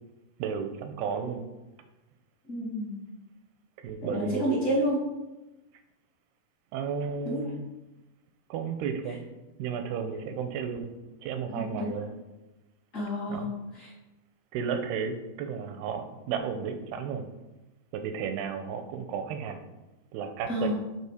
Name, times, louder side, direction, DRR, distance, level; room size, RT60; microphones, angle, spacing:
voice 1, 0.4-1.4 3.8-4.5 6.7-7.6 8.5-9.2 9.6-10.9 11.2-12.1 13.3-13.5 14.5-17.3 17.9-19.6 20.1-20.7, right 6 dB, 85° right, 7 dB, 2.6 m, -33 dB
voice 2, 2.5-3.0 4.0-5.0 7.2-7.5 11.7-12.0 12.9-13.5 13.7-13.9 20.5-20.7, right 1 dB, 30° left, -6 dB, 1.6 m, -29 dB
8.5 x 4.1 x 4.8 m, 1.0 s
omnidirectional pair, 4.7 m